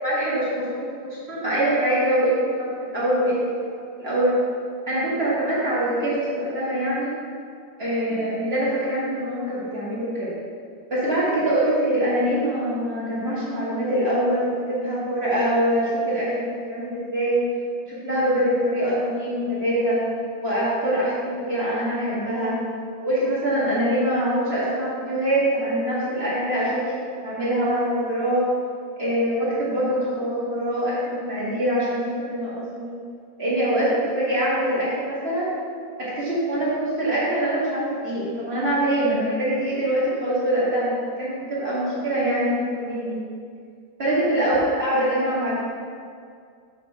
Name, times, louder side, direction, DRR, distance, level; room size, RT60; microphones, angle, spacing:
voice 1, 0.0-3.5 3.9-4.3 4.9-7.1 7.8-10.3 10.9-17.4 17.8-20.0 20.4-22.6 23.0-28.4 29.0-32.9 33.4-35.5 36.0-43.2 44.0-45.5, right 1 dB, 30° right, -9 dB, 1.2 m, -24 dB
7.0 x 6.5 x 3.4 m, 2.2 s
omnidirectional pair, 3.7 m